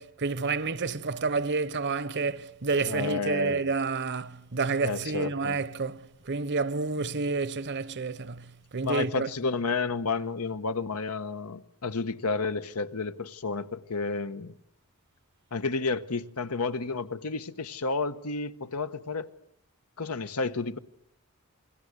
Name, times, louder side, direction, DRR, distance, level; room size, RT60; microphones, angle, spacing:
voice 1, 0.0-9.3, right 4 dB, 50° right, 1.0 m, -29 dB
voice 2, 2.9-3.7 4.8-5.6 8.8-14.6 15.5-19.3 20.0-20.8, left 4 dB, 85° left, 1.2 m, -31 dB
28.5 x 21.5 x 8.2 m
head